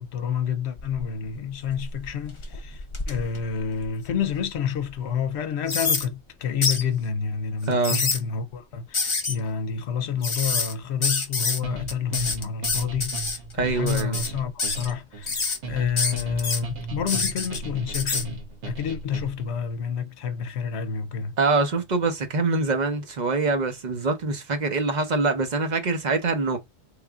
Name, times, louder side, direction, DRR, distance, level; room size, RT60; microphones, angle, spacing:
voice 1, 0.0-21.4, left 7 dB, 75° left, 0.9 m, -29 dB
sound 1, 0.8-1.3 1.7-4.3 4.8-4.9 5.7-6.0 6.6-6.8 7.6-8.2 8.9-9.3 10.2-10.7 11.0-11.6 11.9-13.4 13.9-14.3 14.6-14.9 15.2-15.6 16.0-16.6 17.1-17.6 17.9-18.2, left 4 dB, 35° left, 0.6 m, -27 dB
voice 2, 7.7-8.1 13.5-14.2 21.4-26.6, right 3 dB, 45° right, 0.9 m, -24 dB
sound 2, 11.6-19.5, right 4 dB, 85° right, 1.3 m, -36 dB
3.9 x 3.2 x 2.4 m
omnidirectional pair, 1.1 m